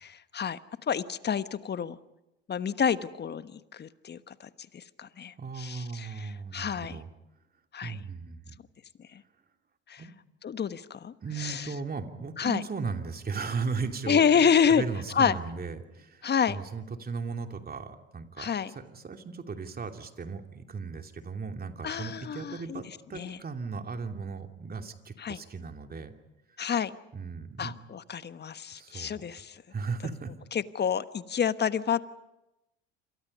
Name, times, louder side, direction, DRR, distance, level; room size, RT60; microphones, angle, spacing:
voice 1, 0.0-0.6 0.9-2.0 2.5-7.0 7.7-8.0 9.1-9.2 9.9-10.0 10.4-11.7 12.4-12.6 14.1-14.8 15.1-15.4 16.2-16.6 18.4-18.7 21.8-22.8 23.1-23.4 25.2-25.4 26.6-26.9 27.6-29.6 30.5-32.1, left 7 dB, 30° left, 13 dB, 1.3 m, -28 dB
voice 2, 5.4-7.1 7.8-8.6 10.0-10.1 11.2-26.1 27.1-27.7 28.7-29.2 29.7-30.3, right 4 dB, 25° right, 5 dB, 2.7 m, -37 dB
28.5 x 27.0 x 5.5 m, 0.95 s
hypercardioid pair, 70°, 33 cm